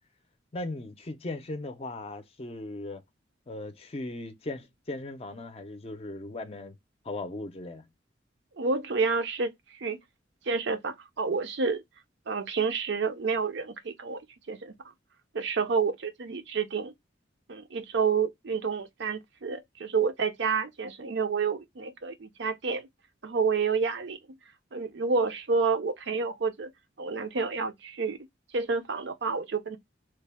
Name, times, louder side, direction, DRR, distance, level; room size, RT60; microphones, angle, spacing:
voice 1, 0.5-3.0 3.5-6.8 7.0-7.9, left 2 dB, 30° left, 0.5 m, -38 dB
voice 2, 8.6-9.5 9.8-10.0 10.5-11.8 12.3-14.2 14.5-14.7 15.3-16.9 17.5-22.9 23.2-24.2 24.7-26.7 27.0-28.2 28.5-29.8, right 5 dB, 65° right, 0.6 m, -29 dB
3.2 x 2.1 x 3.3 m
head